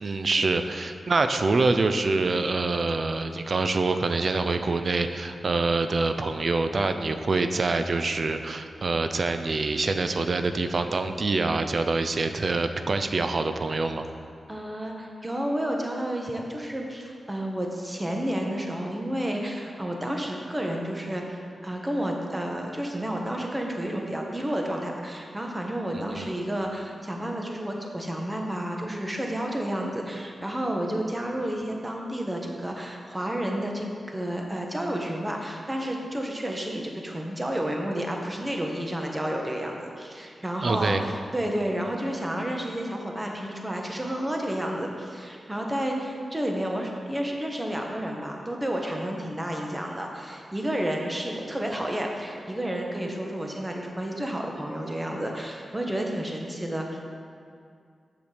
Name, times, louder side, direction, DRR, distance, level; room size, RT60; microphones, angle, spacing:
voice 1, 0.0-14.1 25.9-26.3 40.6-41.0, right 3 dB, 60° right, 8 dB, 0.5 m, -25 dB
voice 2, 14.5-57.1, right 1 dB, 20° right, 1 dB, 1.3 m, -31 dB
7.0 x 6.0 x 5.0 m, 2.3 s
cardioid pair, 45°, 0 cm